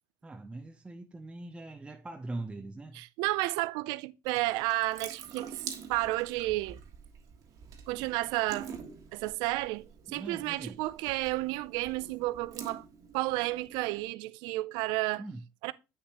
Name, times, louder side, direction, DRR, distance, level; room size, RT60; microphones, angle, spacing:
voice 1, 0.2-3.0 10.1-10.8 15.2-15.4, right 2 dB, 15° right, 0.6 m, -42 dB
voice 2, 2.9-5.5 5.9-6.8 7.9-8.7 9.1-12.8 13.1-15.2 15.6-15.7, right 19 dB, 80° right, 0.4 m, -31 dB
Water tap faucet / Sink (filling or washing) / Drip, 4.2-14.0, right 7 dB, 55° right, 1.6 m, -47 dB
8.0 x 6.7 x 2.9 m
cardioid pair, 110°, 7 cm